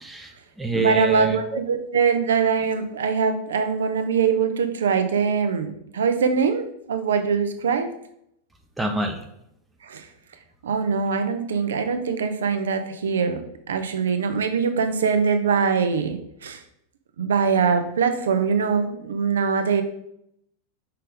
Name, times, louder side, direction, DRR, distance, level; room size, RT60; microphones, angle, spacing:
voice 1, 0.0-1.6 8.8-9.2, right 2 dB, 5° right, 3 dB, 0.8 m, -27 dB
voice 2, 0.7-7.9 9.8-10.1 10.6-13.4 13.7-16.6 17.2-19.8, right 6 dB, 65° right, 8 dB, 0.7 m, -23 dB
5.6 x 5.3 x 3.8 m, 0.74 s
figure-of-eight pair, 90°, 0 cm